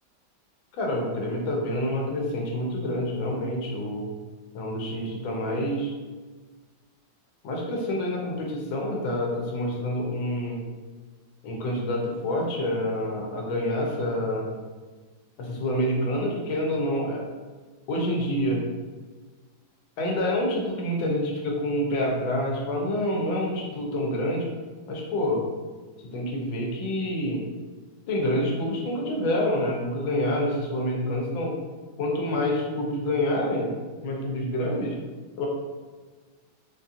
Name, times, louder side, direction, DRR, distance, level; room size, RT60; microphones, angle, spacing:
voice 1, 0.8-4.1 4.5-5.9 7.4-10.6 11.4-14.5 15.4-17.2 17.9-18.6 20.0-24.5 24.9-25.4 26.1-27.4 28.1-31.6 32.0-33.7 34.0-35.0 35.4-35.5, left 1 dB, 80° left, -1 dB, 1.5 m, -27 dB
4.3 x 2.4 x 2.7 m, 1.3 s
omnidirectional pair, 2.1 m